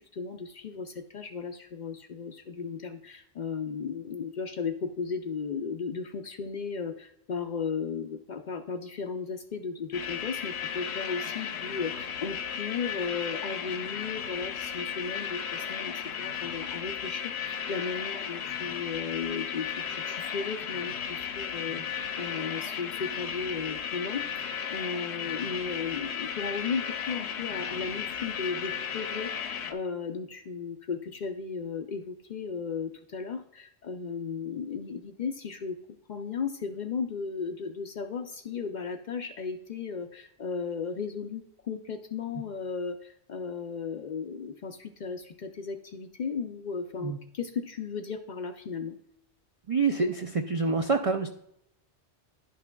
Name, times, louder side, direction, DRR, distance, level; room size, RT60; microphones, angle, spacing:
voice 1, 0.0-35.8 36.1-49.0, left 5 dB, 55° left, 6 dB, 0.5 m, -35 dB
sound 1, 9.9-29.7, left 8 dB, 75° left, 1.0 m, -35 dB
voice 2, 49.7-51.3, right 4 dB, 60° right, 5 dB, 0.3 m, -26 dB
11.0 x 5.9 x 2.2 m, 0.76 s
omnidirectional pair, 1.1 m